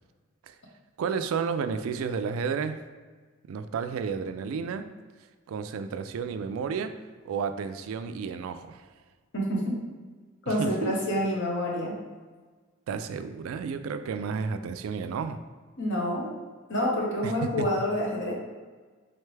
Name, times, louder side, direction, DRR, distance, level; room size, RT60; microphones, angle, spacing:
voice 1, 1.0-2.8 3.5-4.9 5.5-6.9 7.3-8.9 10.5-11.0 12.9-15.4 17.2-17.7, right 5 dB, 85° right, 10 dB, 0.3 m, -32 dB
voice 2, 9.3-9.8 10.4-11.9 15.8-16.4 16.7-18.3, equal, 65° left, -2 dB, 1.0 m, -27 dB
3.9 x 3.3 x 3.2 m, 1.4 s
head